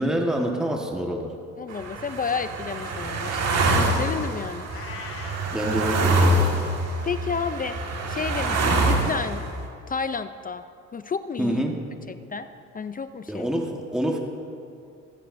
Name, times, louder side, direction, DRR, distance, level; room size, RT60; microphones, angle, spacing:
voice 1, 0.0-1.3 5.5-6.5 11.4-11.8 13.3-14.2, equal, ahead, 1 dB, 1.3 m, -26 dB
voice 2, 1.6-4.7 7.0-7.8 8.1-9.4 9.9-10.6 10.9-11.6 12.1-12.5 12.7-13.5, left 5 dB, 30° left, 11 dB, 0.4 m, -31 dB
sound 1, 1.7-9.6, right 2 dB, 55° right, 1.7 m, -25 dB
Meow, 4.7-5.5, left 7 dB, 50° left, 1.0 m, -40 dB
23.5 x 9.8 x 2.6 m, 2.5 s
cardioid pair, 90°, 30 cm